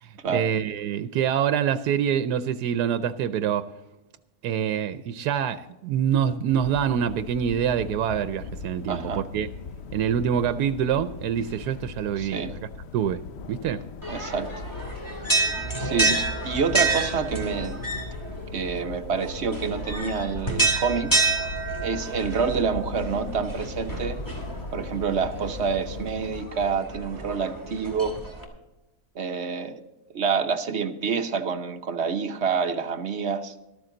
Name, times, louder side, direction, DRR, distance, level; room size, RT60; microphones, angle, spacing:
voice 1, 0.0-3.7 4.4-9.5 9.9-12.4 12.9-13.2 13.5-13.8, right 8 dB, 90° right, 1.2 m, -25 dB
sound 1, 6.5-26.4, left 5 dB, 60° left, 0.7 m, -40 dB
voice 2, 8.9-9.3 12.2-12.5 14.1-14.5 15.8-17.8 18.5-21.2 21.8-24.2 24.7-28.2 29.1-29.8 30.1-33.5, right 5 dB, 50° right, 1.1 m, -27 dB
sound 2, 14.0-28.4, right 3 dB, 10° left, 2.1 m, -29 dB
13.5 x 13.0 x 3.8 m
omnidirectional pair, 1.7 m